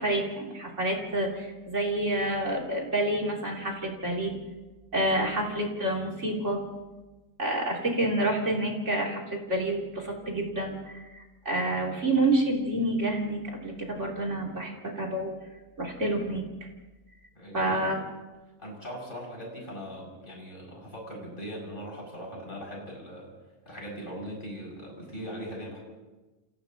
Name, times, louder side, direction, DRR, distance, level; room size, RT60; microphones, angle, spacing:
voice 1, 0.0-4.3 4.9-6.6 7.4-15.3 15.8-16.7 17.5-18.0, right 1 dB, 20° right, -2 dB, 3.2 m, -28 dB
voice 2, 17.3-17.9 18.6-23.3 23.7-25.8, equal, 10° left, -3 dB, 7.4 m, -40 dB
29.5 x 29.0 x 3.1 m, 1.2 s
omnidirectional pair, 4.5 m